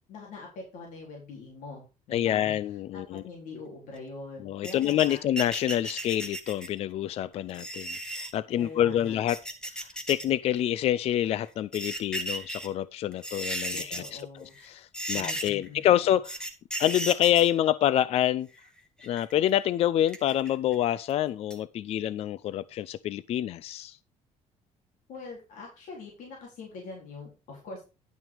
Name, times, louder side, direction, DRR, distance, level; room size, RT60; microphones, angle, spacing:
voice 1, 0.1-2.5 2.9-5.2 8.6-9.3 13.7-14.5 15.1-16.1 25.1-27.8, left 3 dB, 75° left, 4.0 m, -43 dB
voice 2, 2.1-3.2 4.4-9.4 9.7-14.2 14.6-16.4 16.8-18.5 19.0-24.0, left 12 dB, 50° left, 0.4 m, -27 dB
sound 1, 4.6-6.8 7.5-8.3 9.1-10.3 10.6-10.7 11.5-12.7 13.1-14.2 14.5-14.7 14.9-15.7 16.2-17.5 18.5-19.3 20.1-20.7 21.1-21.2 21.5-21.6, right 1 dB, 5° left, 1.6 m, -35 dB
11.0 x 6.1 x 4.9 m
cardioid pair, 150°, 13 cm